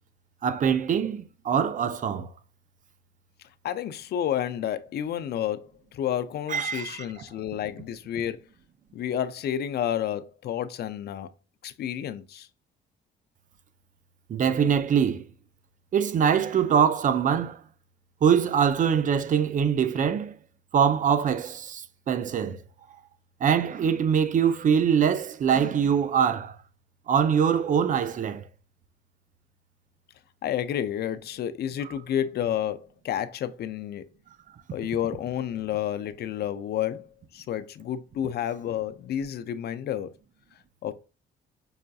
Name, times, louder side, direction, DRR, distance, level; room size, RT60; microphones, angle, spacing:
voice 1, 0.4-2.3 6.5-7.0 14.3-15.3 15.9-17.6 18.2-20.3 20.7-22.6 23.4-26.6 27.1-28.5, right 7 dB, 45° right, 0.5 m, -23 dB
voice 2, 3.6-5.7 5.9-8.4 8.9-11.3 11.6-12.5 30.4-34.1 34.7-37.1 37.3-40.1 40.8-40.9, left 10 dB, 60° left, 0.5 m, -30 dB
5.5 x 2.5 x 2.3 m
cardioid pair, 90°, 19 cm